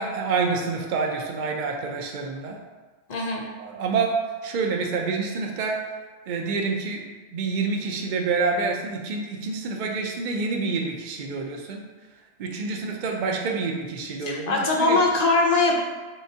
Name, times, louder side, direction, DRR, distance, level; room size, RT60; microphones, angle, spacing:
voice 1, 0.0-2.6 3.6-4.2 4.4-5.8 6.3-11.8 12.4-15.0, right 4 dB, 55° right, 1 dB, 0.5 m, -27 dB
voice 2, 3.1-3.5 14.3-15.8, left 3 dB, 50° left, 0 dB, 0.5 m, -21 dB
3.8 x 3.3 x 2.7 m, 1.4 s
omnidirectional pair, 1.3 m